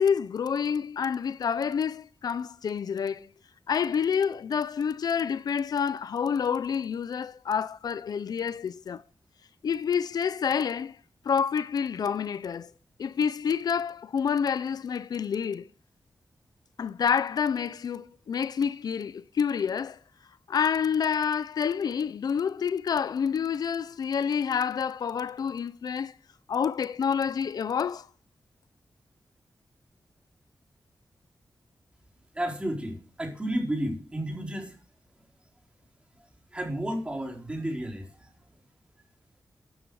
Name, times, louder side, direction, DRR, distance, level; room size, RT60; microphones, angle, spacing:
voice 1, 0.0-3.3 3.7-9.0 9.6-11.0 11.2-12.7 13.0-15.7 16.8-20.0 20.5-26.1 26.5-28.1, left 7 dB, 80° left, 0.6 m, -28 dB
voice 2, 32.3-34.8 36.5-38.3, right 1 dB, 15° right, 4.3 m, -32 dB
13.5 x 12.0 x 4.9 m
wide cardioid pair, 150°, 7 cm